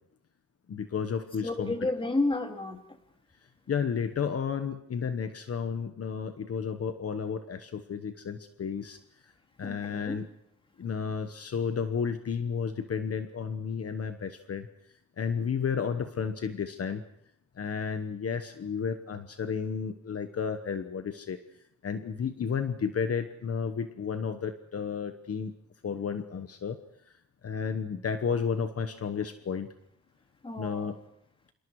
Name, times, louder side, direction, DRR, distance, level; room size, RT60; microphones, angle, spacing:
voice 1, 0.7-1.7 3.7-9.0 9.6-10.3 10.8-14.7 15.2-17.0 17.6-21.4 21.8-25.5 25.8-26.8 27.4-29.7 30.6-31.0, left 6 dB, 55° left, 8 dB, 1.2 m, -32 dB
voice 2, 1.4-2.8 9.6-10.2 30.4-30.9, left 2 dB, 20° left, 5 dB, 2.3 m, -31 dB
30.0 x 26.0 x 4.8 m, 0.75 s
wide cardioid pair, 130°, 29 cm